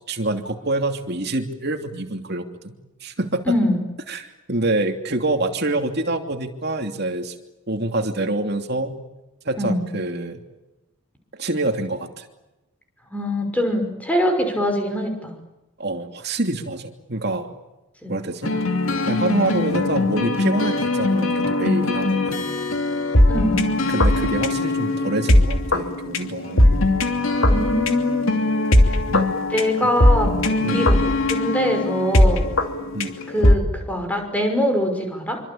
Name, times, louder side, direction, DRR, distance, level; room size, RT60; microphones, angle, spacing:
voice 1, 0.1-3.6 4.1-7.3 7.7-9.0 9.4-10.4 11.4-12.3 15.8-17.5 18.1-18.5 19.1-22.4 23.9-27.0 28.7-29.3 30.6-30.9 32.9-33.1, right 2 dB, 50° right, 5 dB, 2.9 m, -26 dB
voice 2, 3.5-3.8 9.6-9.8 13.1-15.3 18.0-18.1 23.3-23.7 27.5-28.3 28.9-29.0 29.5-30.3 30.7-31.0 31.3-32.4 33.3-35.4, left 1 dB, 5° left, 4 dB, 5.8 m, -23 dB
sound 1, 18.4-33.5, left 1 dB, 70° left, 2.7 m, -20 dB
26.5 x 25.5 x 8.8 m, 0.97 s
head